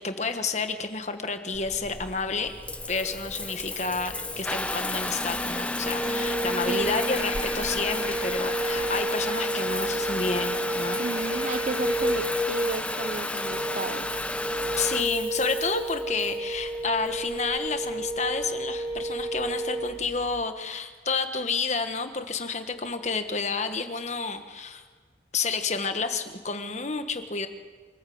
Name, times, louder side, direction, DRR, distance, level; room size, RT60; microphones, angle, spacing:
voice 1, 0.0-2.5 2.9-11.0 14.8-24.8 25.3-27.5, left 4 dB, 35° left, 8 dB, 1.4 m, -30 dB
Water tap faucet / Bathtub (filling or washing) / Trickle dribble, 1.5-20.4, left 2 dB, 5° left, 0.7 m, -33 dB
sound 1, 5.8-19.9, right 1 dB, 15° right, 2.0 m, -31 dB
voice 2, 6.7-7.2 11.0-14.1, right 3 dB, 40° right, 13 dB, 0.6 m, -34 dB
26.0 x 14.5 x 7.9 m, 1.5 s
head